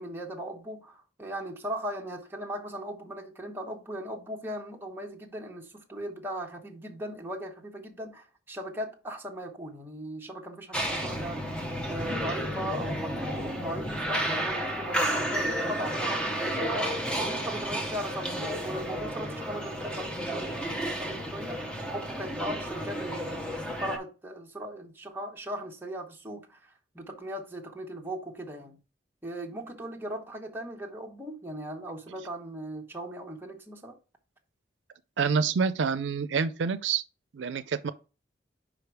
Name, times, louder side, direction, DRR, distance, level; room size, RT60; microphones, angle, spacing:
voice 1, 0.0-11.6 11.9-28.8 29.2-34.0, equal, 10° right, 1.1 m, -38 dB
sound 1, 10.7-24.0, equal, 5° left, 0.9 m, -32 dB
voice 2, 35.2-37.0 37.3-37.9, right 5 dB, 85° right, 0.4 m, -27 dB
5.0 x 5.0 x 4.6 m
head